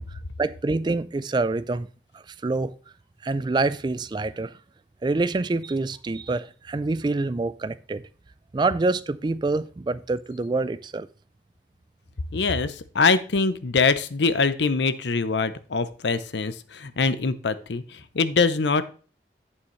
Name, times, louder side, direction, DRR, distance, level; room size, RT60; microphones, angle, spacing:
voice 1, 0.4-1.9 2.1-2.7 3.2-4.5 5.0-8.0 8.5-11.1, right 3 dB, 25° right, 0.3 m, -26 dB
voice 2, 12.3-18.8, left 4 dB, 85° left, 0.7 m, -23 dB
8.6 x 7.1 x 3.1 m
head